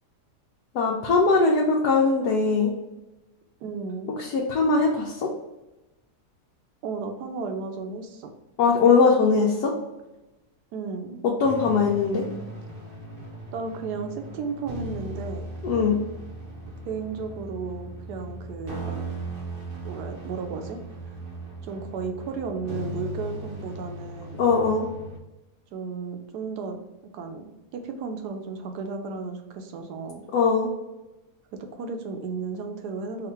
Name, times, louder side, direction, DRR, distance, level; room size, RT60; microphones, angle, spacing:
voice 1, 0.7-2.7 4.2-5.3 8.6-9.7 11.4-12.2 15.6-16.0 24.4-24.9 30.3-30.7, left 4 dB, 75° left, -2 dB, 1.2 m, -21 dB
voice 2, 3.6-4.1 6.8-8.3 10.7-11.2 13.5-15.6 16.8-19.0 19.8-20.8 21.6-24.4 25.7-26.8 27.1-30.2 31.5-33.3, right 4 dB, 75° right, 5 dB, 1.2 m, -34 dB
sound 1, 11.4-25.2, right 1 dB, 45° right, 0.7 m, -38 dB
3.7 x 2.4 x 4.3 m, 1.0 s
omnidirectional pair, 1.7 m